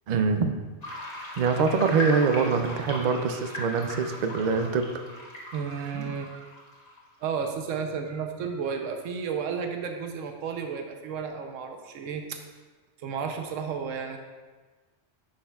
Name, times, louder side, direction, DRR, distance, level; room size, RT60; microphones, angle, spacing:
voice 1, 0.1-0.6 1.4-5.0, right 5 dB, 60° right, 7 dB, 0.4 m, -24 dB
sound 1, 0.8-7.2, left 1 dB, 35° left, 1.3 m, -38 dB
voice 2, 5.5-6.5 7.2-12.4 13.0-14.2, right 6 dB, 90° right, 5 dB, 1.0 m, -32 dB
9.4 x 6.5 x 2.3 m, 1.4 s
omnidirectional pair, 1.3 m